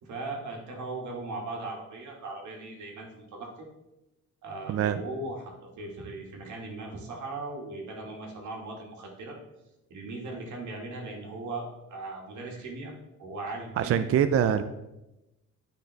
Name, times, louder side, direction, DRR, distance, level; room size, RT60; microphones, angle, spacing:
voice 1, 0.0-3.7 4.4-5.5 5.8-9.4 9.9-12.9 13.2-14.1, right 2 dB, 70° right, 0 dB, 1.9 m, -38 dB
voice 2, 4.7-5.0 13.8-14.6, right 9 dB, 50° right, 10 dB, 0.5 m, -24 dB
9.2 x 4.9 x 3.4 m, 0.94 s
cardioid pair, 90°, 30 cm